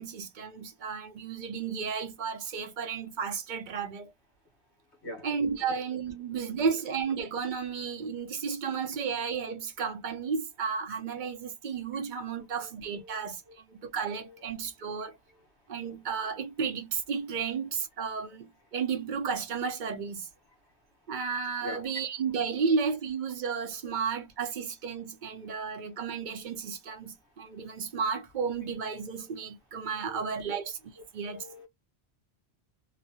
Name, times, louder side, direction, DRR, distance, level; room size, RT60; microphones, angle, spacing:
voice 1, 0.0-4.1 5.2-15.2 15.7-20.3 21.1-30.8 31.1-31.5, right 6 dB, 55° right, 0.7 m, -33 dB
voice 2, 31.2-31.7, equal, 85° left, 1.4 m, -42 dB
3.0 x 2.0 x 2.7 m
omnidirectional pair, 1.1 m